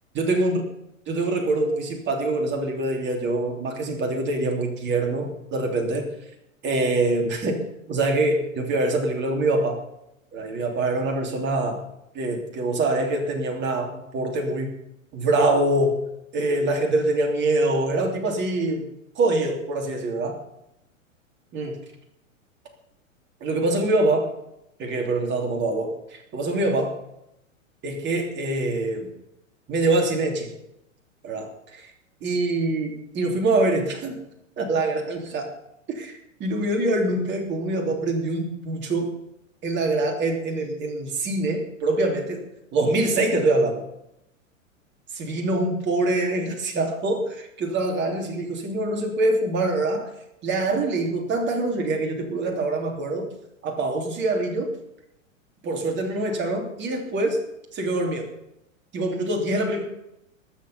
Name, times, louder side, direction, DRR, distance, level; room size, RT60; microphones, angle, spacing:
voice 1, 0.1-0.6 1.1-6.1 6.6-7.6 7.9-9.8 10.3-11.8 12.1-14.7 15.1-16.0 16.3-18.9 19.1-20.4 21.5-21.8 23.4-24.3 24.8-27.0 27.8-29.1 29.7-30.5 31.2-31.9 32.2-34.2 34.6-35.5 35.9-39.1 39.6-42.4 42.7-43.8 45.1-50.1 50.4-53.3 53.6-54.7 55.6-57.4 57.7-58.3 58.9-59.8, right 2 dB, 25° right, 1 dB, 3.1 m, -24 dB
21.5 x 7.5 x 5.7 m, 0.83 s
figure-of-eight pair, 105°, 40 cm